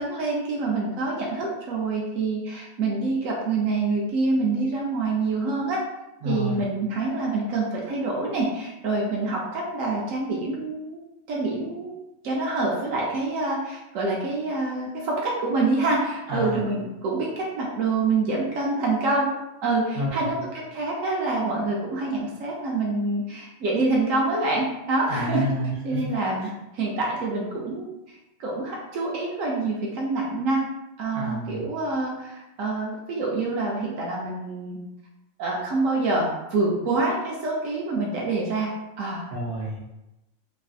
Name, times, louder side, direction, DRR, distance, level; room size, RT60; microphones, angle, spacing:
voice 1, 0.0-5.8 6.2-11.0 11.3-11.9 12.2-19.3 19.6-25.4 25.8-26.5 26.7-30.6 31.0-34.8 35.4-38.7 39.0-39.3, right 3 dB, 90° right, -3 dB, 1.0 m, -26 dB
voice 2, 6.2-6.6 16.3-16.6 19.9-20.4 25.1-25.7 26.4-26.5 31.1-31.6 39.3-39.8, equal, 70° right, -4 dB, 1.1 m, -29 dB
3.1 x 2.5 x 2.4 m, 0.93 s
omnidirectional pair, 1.3 m